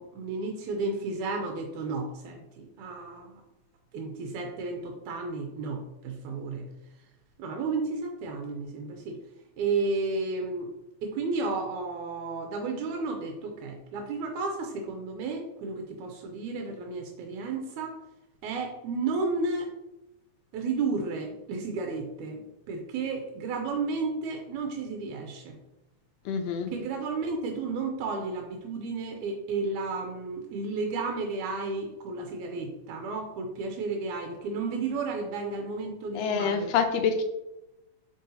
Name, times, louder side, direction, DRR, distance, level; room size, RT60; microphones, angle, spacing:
voice 1, 0.0-3.4 3.9-6.7 7.4-9.2 9.6-10.7 11.0-18.0 18.4-19.7 20.5-22.4 22.7-25.6 26.7-36.7, right 3 dB, 85° right, 3 dB, 2.1 m, -32 dB
voice 2, 26.2-26.7 36.1-37.2, left 6 dB, 85° left, 6 dB, 1.4 m, -26 dB
7.4 x 4.7 x 2.7 m, 0.96 s
omnidirectional pair, 3.4 m